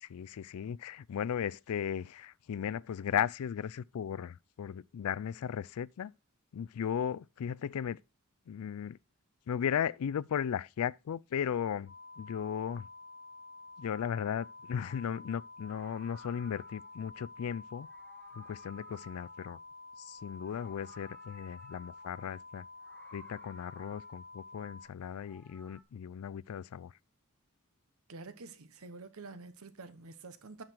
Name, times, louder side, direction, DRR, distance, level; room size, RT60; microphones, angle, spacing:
voice 1, 0.0-6.1 6.5-8.0 8.5-9.0 9.5-12.9 13.8-17.9 18.4-19.6 20.0-22.6 23.1-26.9, left 8 dB, 75° left, 0.4 m, -36 dB
sound 1, 11.9-24.9, left 3 dB, 30° right, 2.3 m, -50 dB
Meow, 15.6-17.0 17.8-20.0 20.3-22.2 22.7-24.3 24.9-25.8, left 1 dB, 5° left, 0.9 m, -59 dB
voice 2, 28.1-30.6, right 3 dB, 70° right, 1.0 m, -48 dB
9.6 x 6.6 x 4.4 m
head